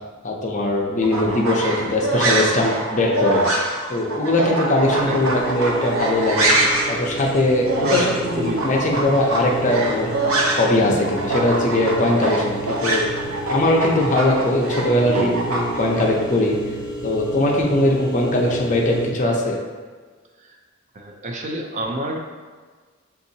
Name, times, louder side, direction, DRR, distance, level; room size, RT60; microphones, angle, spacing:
voice 1, 0.2-3.4 3.9-6.5 6.9-10.1 10.6-13.0 13.5-16.6 17.0-19.6, left 1 dB, 35° left, -1 dB, 0.6 m, -20 dB
sound 1, 1.0-10.8 11.0-16.1, right 2 dB, 85° right, 0.7 m, -24 dB
sound 2, 4.8-19.1, right 1 dB, 10° right, 1.0 m, -31 dB
voice 2, 5.1-5.4 7.8-8.6 15.0-15.6 20.5-20.6 20.9-22.2, right 1 dB, 35° right, 2 dB, 0.5 m, -28 dB
7.0 x 2.8 x 2.7 m, 1.5 s
head